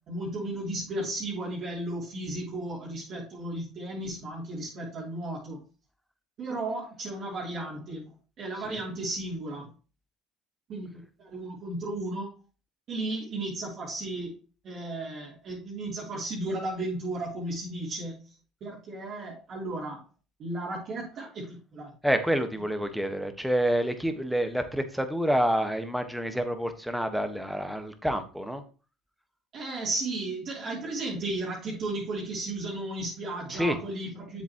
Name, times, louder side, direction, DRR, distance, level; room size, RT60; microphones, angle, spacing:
voice 1, 0.1-5.6 6.4-9.7 10.7-12.3 12.9-14.3 14.6-20.0 20.4-21.9 29.5-34.4, right 2 dB, 55° right, -5 dB, 3.1 m, -34 dB
voice 2, 22.0-28.6 33.5-33.8, equal, ahead, 8 dB, 1.4 m, -28 dB
7.5 x 7.4 x 3.0 m, 0.34 s
hypercardioid pair, 75°, 0 cm